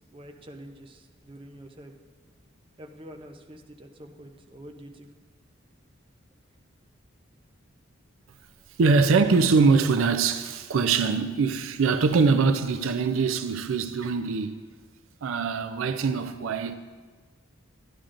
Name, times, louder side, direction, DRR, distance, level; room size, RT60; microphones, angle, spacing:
voice 1, 0.1-2.0 2.8-5.1, equal, 25° right, 0.6 m, -46 dB
voice 2, 8.8-14.6 15.2-16.7, right 4 dB, 85° right, 0.4 m, -23 dB
11.5 x 10.0 x 2.5 m
head